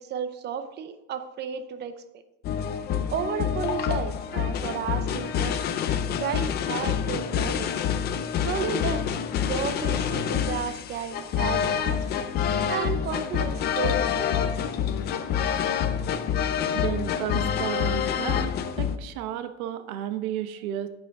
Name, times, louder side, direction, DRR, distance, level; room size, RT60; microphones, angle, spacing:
voice 1, 0.0-2.0 3.1-5.7 6.2-7.7 8.4-12.0 12.7-14.5, right 7 dB, 25° right, 10 dB, 0.6 m, -33 dB
sound 1, 2.4-19.0, left 8 dB, 25° left, 0.4 m, -27 dB
voice 2, 16.7-20.9, right 11 dB, 85° right, 9 dB, 1.1 m, -33 dB
9.3 x 8.6 x 3.5 m, 1.0 s
supercardioid pair, 155°, 41 cm